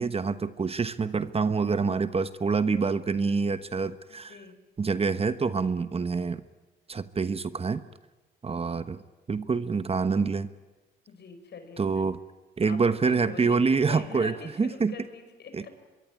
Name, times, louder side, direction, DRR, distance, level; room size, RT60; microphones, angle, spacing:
voice 1, 0.0-4.4 4.8-6.4 6.9-7.8 8.4-9.0 9.3-10.5 11.8-12.2 12.6-14.9 15.5-15.7, right 4 dB, 30° right, 12 dB, 1.1 m, -26 dB
voice 2, 4.1-4.5 11.1-12.1 12.6-15.7, left 5 dB, 60° left, 8 dB, 5.7 m, -44 dB
25.0 x 22.5 x 9.7 m, 1.1 s
cardioid pair, 90°, 20 cm